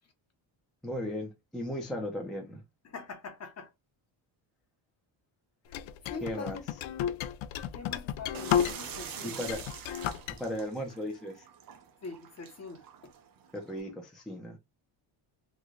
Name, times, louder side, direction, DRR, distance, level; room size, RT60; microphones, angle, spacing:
voice 1, 0.8-2.6 6.2-6.6 9.2-9.6 10.4-11.5 13.5-14.6, equal, ahead, 0.5 m, -36 dB
voice 2, 2.8-3.7 5.7-6.6 7.7-9.4 12.0-12.8, left 4 dB, 30° left, 0.8 m, -43 dB
sound 1, 5.7-9.0 9.4-10.4, left 9 dB, 70° left, 0.5 m, -32 dB
sound 2, 8.3-13.8, right 8 dB, 45° right, 0.6 m, -45 dB
3.2 x 2.2 x 3.7 m
cardioid pair, 160°, 50 cm